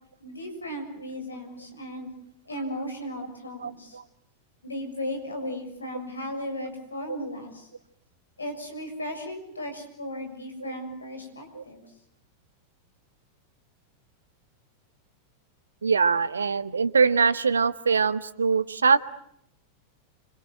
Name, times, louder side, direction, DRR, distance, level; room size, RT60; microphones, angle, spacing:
voice 1, 0.2-2.1 2.5-4.0 4.6-7.7 8.4-11.8, left 1 dB, 80° left, 5 dB, 6.7 m, -36 dB
voice 2, 3.6-4.0 11.5-11.6 15.8-19.0, right 5 dB, 75° right, 17 dB, 1.2 m, -23 dB
28.0 x 26.5 x 7.8 m, 0.73 s
figure-of-eight pair, 90°, 0 cm